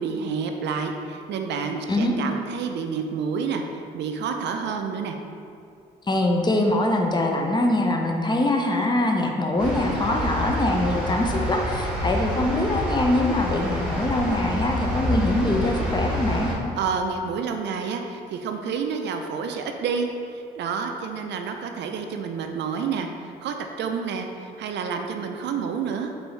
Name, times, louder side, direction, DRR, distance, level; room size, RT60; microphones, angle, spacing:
voice 1, 0.0-3.6 3.9-5.2 16.8-23.1 23.4-26.1, right 5 dB, 60° right, 5 dB, 0.4 m, -29 dB
voice 2, 6.1-16.5, left 1 dB, 20° left, 2 dB, 0.5 m, -23 dB
sound 1, 9.6-16.5, left 1 dB, 5° right, 1.3 m, -28 dB
4.5 x 2.6 x 3.2 m, 2.4 s
hypercardioid pair, 50°, 20 cm